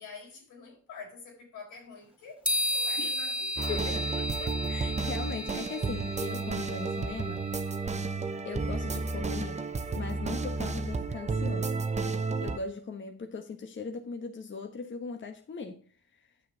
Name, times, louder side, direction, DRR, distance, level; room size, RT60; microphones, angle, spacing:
voice 1, 0.0-2.4 2.7-4.1, left 5 dB, 85° left, 4.3 m, -47 dB
sound 1, 2.4-7.7, left 1 dB, 5° right, 2.5 m, -34 dB
sound 2, 3.6-12.6, right 3 dB, 25° right, 0.9 m, -32 dB
voice 2, 3.7-7.5 7.8-8.1 8.4-11.9 12.4-15.8, left 4 dB, 40° left, 1.2 m, -39 dB
9.4 x 6.2 x 3.9 m
cardioid pair, 90°, 30 cm